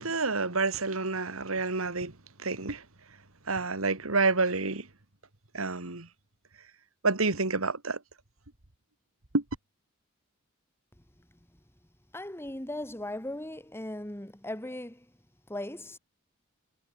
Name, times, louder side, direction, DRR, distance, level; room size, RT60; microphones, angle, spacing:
voice 1, 0.0-2.1 2.4-2.8 3.5-4.9 5.5-6.1 7.0-8.0 9.3-9.4, right 3 dB, 85° right, 2.4 m, -28 dB
voice 2, 12.1-15.1 15.5-16.0, left 1 dB, 10° left, 2.9 m, -38 dB
head